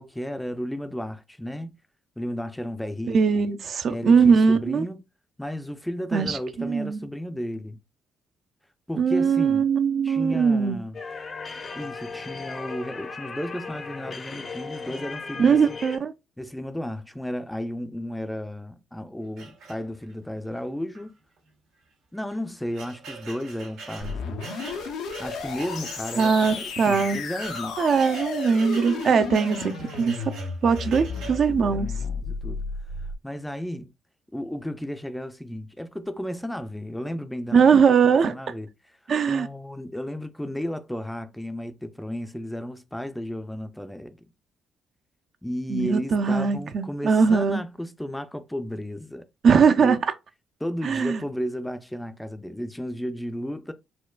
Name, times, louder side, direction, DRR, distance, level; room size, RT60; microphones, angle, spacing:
voice 1, 0.0-1.8 2.2-3.4 3.9-5.0 5.4-7.8 8.9-9.7 10.0-11.0 11.7-15.8 16.4-21.1 22.1-24.5 25.2-27.8 30.8-32.6 33.2-33.9 34.3-37.7 38.0-38.7 39.3-44.3 45.4-49.3 49.8-50.0 50.6-53.7, equal, 5° left, 0.4 m, -33 dB
voice 2, 3.1-4.9 6.1-7.1 9.0-10.8 15.4-16.1 26.2-27.2 27.8-30.3 30.6-31.9 37.5-38.4 39.1-39.5 45.7-47.6 49.4-50.0 50.8-51.2, right 6 dB, 55° right, 0.4 m, -21 dB
sound 1, 10.9-16.0, left 4 dB, 40° left, 0.6 m, -37 dB
sound 2, 19.4-20.2 20.9-21.1 21.4-21.5 22.2-31.5, right 4 dB, 90° right, 1.5 m, -43 dB
sound 3, 24.0-33.2, left 5 dB, 85° left, 0.7 m, -33 dB
4.3 x 2.3 x 2.2 m
cardioid pair, 90°, 0 cm